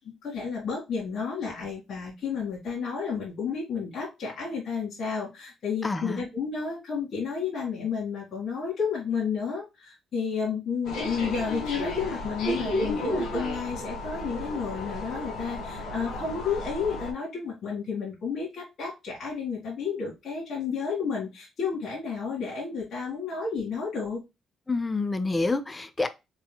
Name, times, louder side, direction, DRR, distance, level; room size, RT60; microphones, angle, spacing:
voice 1, 0.2-24.2, left 5 dB, 60° left, 1.9 m, -31 dB
voice 2, 5.8-6.3 24.7-26.1, left 3 dB, 20° left, 0.6 m, -28 dB
sound 1, 10.8-17.1, left 1 dB, 90° left, 1.5 m, -33 dB
3.8 x 3.6 x 2.2 m
cardioid pair, 90°, 0 cm